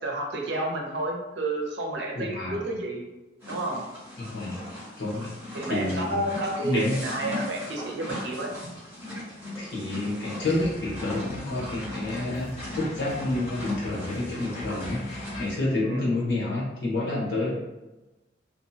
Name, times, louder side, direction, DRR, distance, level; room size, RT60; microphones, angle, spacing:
voice 1, 0.0-3.0 3.5-3.8 5.5-8.5 15.8-16.1, right 2 dB, 65° right, -1 dB, 0.6 m, -30 dB
voice 2, 2.1-2.6 4.2-4.5 5.0-6.3 6.6-6.9 9.6-17.5, left 2 dB, 70° left, -5 dB, 1.0 m, -29 dB
sound 1, 3.4-15.6, left 1 dB, 10° right, 1.2 m, -38 dB
sound 2, 10.4-15.5, left 1 dB, 40° left, 0.4 m, -40 dB
2.7 x 2.3 x 2.7 m, 1.1 s
head